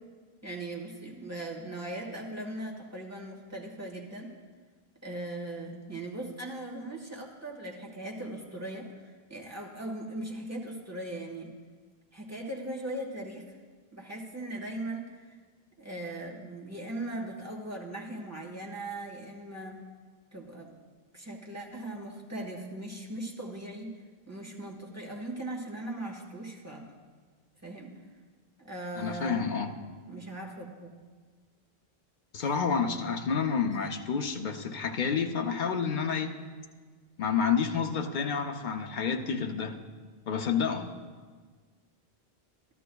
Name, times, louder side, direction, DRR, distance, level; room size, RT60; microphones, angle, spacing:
voice 1, 0.4-4.3 5.0-11.5 12.1-13.5 13.9-15.4 15.8-19.8 20.3-20.7 21.1-23.9 24.3-26.9 27.6-28.0 28.6-29.5 30.1-31.0 33.8-33.9, right 1 dB, 15° right, -2 dB, 1.4 m, -39 dB
voice 2, 29.0-29.7 32.3-36.4 37.2-39.8 40.3-40.9, left 6 dB, 55° left, 5 dB, 0.7 m, -29 dB
13.5 x 13.0 x 2.3 m, 1.5 s
omnidirectional pair, 1.0 m